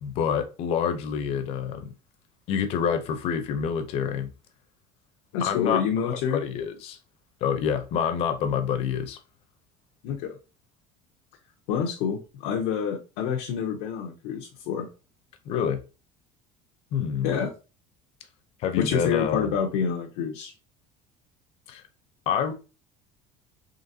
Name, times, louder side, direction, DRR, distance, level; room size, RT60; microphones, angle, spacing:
voice 1, 0.0-1.8 2.5-4.3 5.4-7.0 7.4-9.2 15.5-15.8 16.9-17.3 18.6-19.5 21.7-21.8 22.3-22.5, left 7 dB, 45° left, 0.6 m, -27 dB
voice 2, 5.3-6.4 10.0-10.4 11.7-14.9 17.2-17.5 18.8-20.5, left 7 dB, 90° left, 0.7 m, -27 dB
3.9 x 3.1 x 2.7 m
cardioid pair, 175°, 14 cm